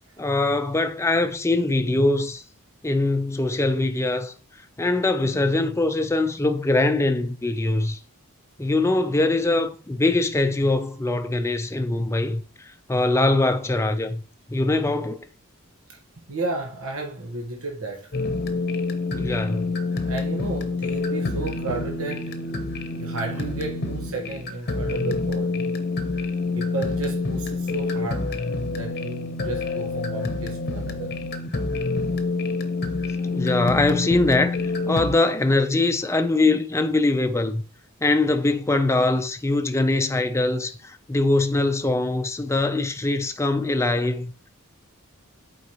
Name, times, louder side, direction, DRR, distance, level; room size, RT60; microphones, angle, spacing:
voice 1, 0.2-2.4 2.8-4.3 4.8-8.0 8.6-12.4 12.9-14.2 14.5-15.3 19.1-19.7 33.3-34.6 34.9-37.6 38.0-44.5, left 2 dB, 15° left, 0.5 m, -22 dB
voice 2, 16.3-18.1 20.1-22.3 22.9-25.7 26.5-31.1 33.2-33.3, right 3 dB, 70° right, 1.3 m, -33 dB
sound 1, 18.1-35.2, left 3 dB, 45° left, 0.8 m, -27 dB
8.2 x 4.6 x 3.0 m
head